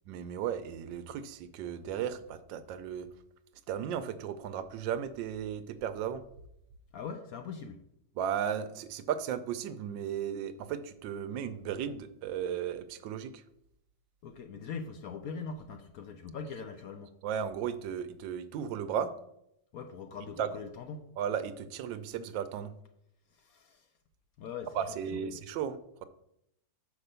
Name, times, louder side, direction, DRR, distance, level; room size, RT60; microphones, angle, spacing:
voice 1, 0.1-3.1 3.7-6.2 8.2-13.3 17.2-19.1 20.4-20.5 21.2-22.7 24.7-26.1, right 8 dB, 80° right, 12 dB, 1.3 m, -35 dB
voice 2, 6.9-7.8 14.2-17.1 19.7-21.0 23.3-23.9 24.4-24.7 25.1-25.4, left 5 dB, 65° left, 7 dB, 0.9 m, -42 dB
5.9 x 4.9 x 6.7 m, 0.79 s
omnidirectional pair, 2.0 m